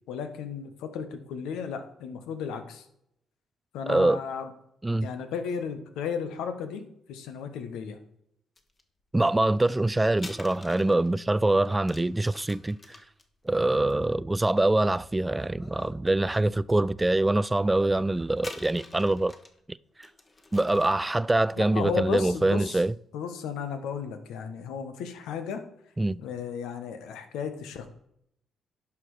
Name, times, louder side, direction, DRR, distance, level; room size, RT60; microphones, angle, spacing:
voice 1, 0.1-2.9 3.7-4.5 5.0-8.0 21.6-22.8 23.1-25.7 26.2-27.9, left 6 dB, 90° left, 1.2 m, -34 dB
voice 2, 3.9-4.2 4.8-5.1 9.1-12.8 13.5-19.3 20.5-22.9 26.0-26.2, right 2 dB, 15° right, 0.3 m, -24 dB
sound 1, 8.6-8.8 10.1-14.9 15.5-16.1 16.5-16.6 18.4-19.6 20.0-21.1, left 2 dB, 25° left, 1.4 m, -47 dB
10.5 x 6.1 x 4.9 m
cardioid pair, 90°, 0 cm